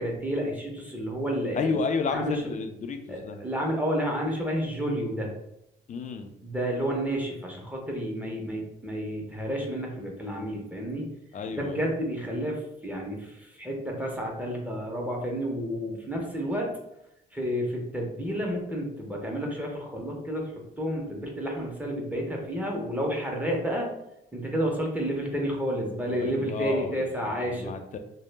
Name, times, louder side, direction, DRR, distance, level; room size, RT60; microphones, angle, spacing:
voice 1, 0.0-1.8 2.1-2.3 3.1-5.3 6.4-11.1 11.5-16.7 17.3-20.5 20.8-23.9 24.3-27.7, equal, 5° right, -1 dB, 0.6 m, -30 dB
voice 2, 1.5-3.4 5.9-6.3 11.3-11.8 26.1-28.0, left 4 dB, 40° left, 7 dB, 0.4 m, -31 dB
2.1 x 2.0 x 3.2 m, 0.83 s
cardioid pair, 90°, 20 cm